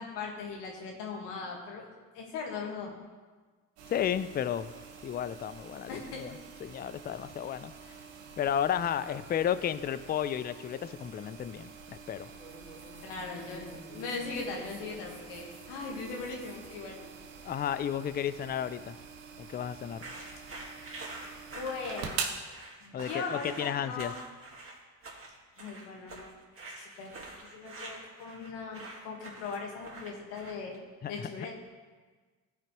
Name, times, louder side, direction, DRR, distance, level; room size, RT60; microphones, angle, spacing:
voice 1, 0.0-1.9 2.1-2.9 5.9-6.2 13.0-17.0 21.5-22.2 22.8-24.1 25.6-26.3 26.8-27.1 27.5-30.8 31.1-31.5, left 4 dB, 80° left, 1 dB, 1.6 m, -39 dB
sound 1, 3.8-22.4, right 6 dB, 85° right, 1.0 m, -45 dB
voice 2, 3.9-4.7 5.0-6.3 6.6-7.9 8.4-12.3 17.4-19.0 19.4-20.1 22.9-24.1 31.0-31.3, left 9 dB, 25° left, 14 dB, 0.4 m, -33 dB
sound 2, 12.4-17.6, equal, 5° right, 2.7 m, -50 dB
sound 3, 20.0-30.7, right 2 dB, 30° right, 2.0 m, -46 dB
14.5 x 5.0 x 3.0 m, 1.4 s
supercardioid pair, 65°, 43 cm